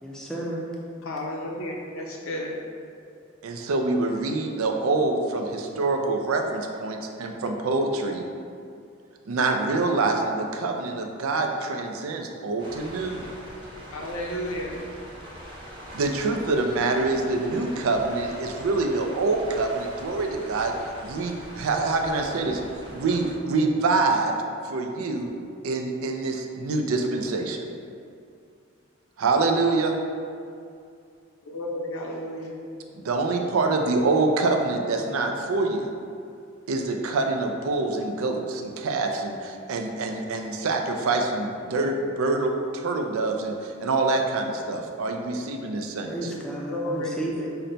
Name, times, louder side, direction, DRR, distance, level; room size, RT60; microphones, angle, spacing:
voice 1, 0.0-0.7 46.1-47.6, right 1 dB, 5° left, -4 dB, 0.5 m, -32 dB
voice 2, 1.0-2.6 13.9-14.7 31.5-32.5 46.7-47.1, left 1 dB, 80° left, 0 dB, 0.6 m, -32 dB
voice 3, 3.4-8.2 9.3-13.2 15.9-20.7 21.0-22.6 22.9-24.3 24.6-25.3 25.6-27.6 29.2-30.0 32.9-35.9 36.7-46.3, right 3 dB, 85° right, 3 dB, 0.4 m, -25 dB
sound 1, 12.6-23.3, equal, 20° right, 0.8 m, -42 dB
5.7 x 2.2 x 3.8 m, 2.4 s
head